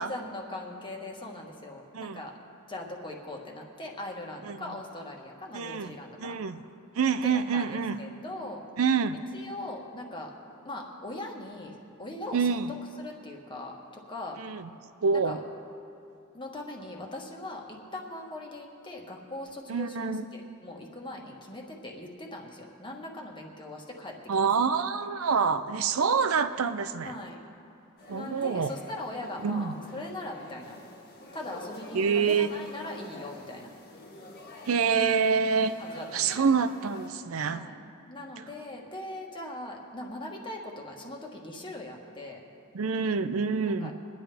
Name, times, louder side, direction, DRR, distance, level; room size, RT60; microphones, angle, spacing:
voice 1, 0.0-2.4 2.7-6.4 7.2-8.6 9.3-10.3 10.6-12.5 13.0-14.4 15.1-15.4 16.3-24.5 27.0-27.4 28.1-30.8 31.3-33.7 35.8-36.5 37.4-37.8 38.1-42.4 43.7-43.9, left 1 dB, 25° left, 0 dB, 1.5 m, -40 dB
voice 2, 5.5-5.9 6.2-6.6 6.9-8.0 8.8-9.2 12.3-12.7 14.4-14.7 15.0-15.4 19.7-20.2 24.3-27.1 28.1-28.7 29.4-29.7 31.9-32.5 34.7-35.8 36.1-37.6 42.7-43.9, right 5 dB, 80° right, 11 dB, 0.6 m, -26 dB
sound 1, 28.0-37.1, left 2 dB, 50° left, 1.7 m, -47 dB
23.0 x 10.5 x 3.4 m, 2.6 s
head